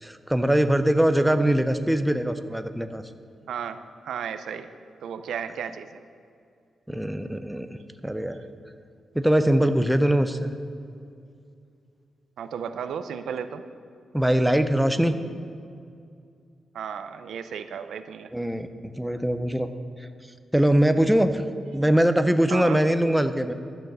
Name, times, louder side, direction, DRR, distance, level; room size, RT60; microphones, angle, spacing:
voice 1, 0.0-3.0 6.9-8.4 9.1-10.5 14.1-15.2 18.3-19.7 20.0-20.1 20.5-21.4 21.7-23.5, right 1 dB, 5° right, 9 dB, 0.4 m, -22 dB
voice 2, 3.5-4.7 5.0-6.0 12.4-13.6 16.7-18.3 22.5-22.8, right 7 dB, 90° right, 10 dB, 0.5 m, -34 dB
11.5 x 6.4 x 6.7 m, 2.4 s
wide cardioid pair, 160°, 0 cm